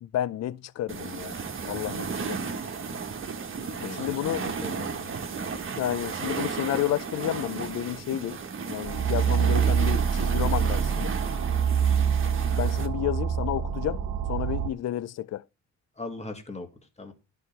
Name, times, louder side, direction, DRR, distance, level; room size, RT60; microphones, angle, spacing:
voice 1, 0.0-1.3 1.6-2.5 3.8-4.5 5.7-8.4 8.7-11.1 12.6-14.0 14.3-15.4, left 12 dB, 60° left, 0.6 m, -31 dB
sound 1, 0.9-12.9, right 5 dB, 45° right, 1.6 m, -34 dB
voice 2, 3.8-5.3 16.0-16.7 17.0-17.1, left 2 dB, 20° left, 2.5 m, -39 dB
sound 2, 8.8-14.7, right 7 dB, 75° right, 1.2 m, -25 dB
11.0 x 5.7 x 5.7 m
cardioid pair, 90°, 30 cm